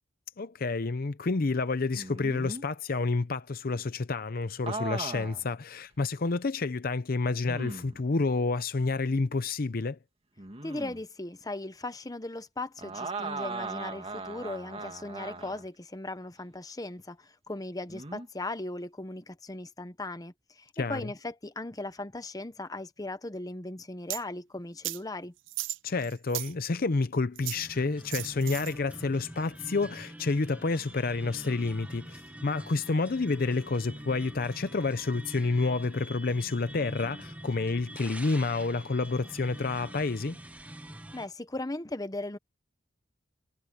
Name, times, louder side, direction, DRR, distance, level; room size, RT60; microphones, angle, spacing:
voice 1, 0.4-10.0 20.8-21.0 25.8-40.4, left 3 dB, 50° left, 0.6 m, -29 dB
sound 1, 2.0-2.6 4.6-5.5 6.0-6.1 7.5-8.0 10.4-11.0 12.8-15.7 17.9-18.3, right 3 dB, 30° right, 2.3 m, -38 dB
voice 2, 10.6-25.3 41.1-42.4, left 2 dB, 20° left, 0.9 m, -38 dB
sound 2, 24.1-24.2 24.8-25.0 25.5-26.5 27.4-27.7 28.1-28.7, right 16 dB, 75° right, 0.6 m, -35 dB
sound 3, 27.5-41.3, right 1 dB, 10° right, 1.1 m, -45 dB
head